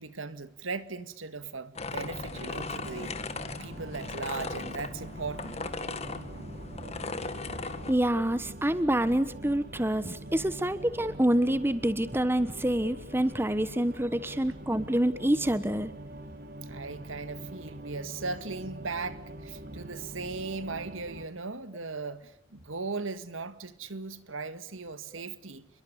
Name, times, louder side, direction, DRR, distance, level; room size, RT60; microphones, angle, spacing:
voice 1, 0.0-5.7 16.7-25.7, right 4 dB, 90° right, 1.9 m, -38 dB
sound 1, 1.8-7.9, left 3 dB, 35° left, 1.9 m, -38 dB
sound 2, 2.0-21.3, right 1 dB, 50° right, 2.6 m, -44 dB
voice 2, 7.9-15.9, right 1 dB, 10° right, 1.2 m, -27 dB
29.5 x 22.5 x 6.9 m
head